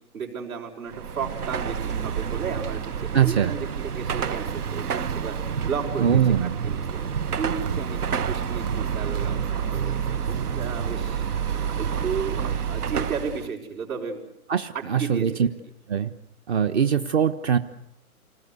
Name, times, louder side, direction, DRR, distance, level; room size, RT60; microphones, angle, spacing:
voice 1, 0.1-5.3 5.6-7.1 7.4-8.0 8.3-10.0 10.3-11.2 11.8-14.2 14.7-15.5, right 6 dB, 70° right, -4 dB, 6.4 m, -33 dB
Car passing by / Traffic noise roadway noise / Engine, 0.9-13.5, right 7 dB, 85° right, 1.2 m, -28 dB
voice 2, 3.1-3.5 6.0-6.6 14.5-15.5 15.9-16.1 16.5-17.6, right 8 dB, 45° right, 10 dB, 1.2 m, -22 dB
28.0 x 19.5 x 9.6 m, 0.80 s
hypercardioid pair, 150°, 44 cm